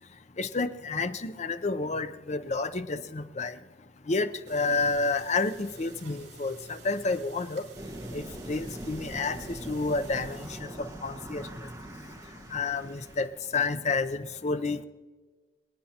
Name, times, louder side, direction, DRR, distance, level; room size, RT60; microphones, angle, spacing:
voice 1, 0.4-3.6 4.1-7.6 8.1-10.7 11.0-11.4 12.5-13.3 13.5-14.9, left 3 dB, 40° left, 10 dB, 0.6 m, -30 dB
sound 1, 4.4-10.6, right 2 dB, 85° right, 2.5 m, -50 dB
sound 2, 7.7-13.3, right 1 dB, 20° right, 1.6 m, -42 dB
27.0 x 9.2 x 2.9 m, 1.4 s
head